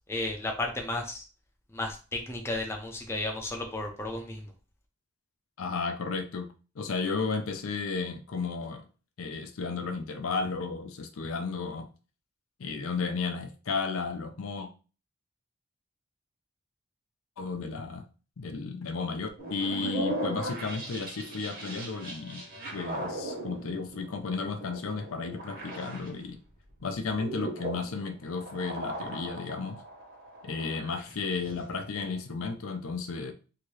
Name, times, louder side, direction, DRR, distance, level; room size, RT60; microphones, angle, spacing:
voice 1, 0.1-1.2 1.7-4.5, left 2 dB, 10° left, 1 dB, 0.5 m, -33 dB
voice 2, 5.6-6.5 6.8-8.8 9.2-11.9 12.6-14.7 17.4-18.0 18.4-22.4 22.7-26.4 26.8-29.8 30.4-33.3, left 4 dB, 90° left, 6 dB, 0.5 m, -33 dB
sound 1, 19.4-26.2 26.7-32.2, right 1 dB, 45° right, 1.2 m, -38 dB
2.8 x 2.7 x 3.1 m, 0.34 s
head